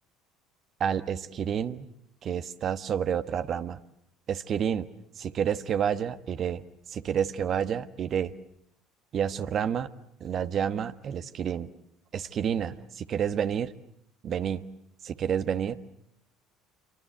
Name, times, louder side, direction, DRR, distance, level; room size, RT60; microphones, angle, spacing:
voice 1, 0.8-1.9 2.2-3.8 4.3-4.9 5.2-8.3 9.1-9.9 10.2-11.7 12.1-13.7 14.2-14.7 15.0-16.0, right 8 dB, 45° right, 11 dB, 1.3 m, -29 dB
28.0 x 24.5 x 8.0 m, 0.73 s
hypercardioid pair, 60°, 0 cm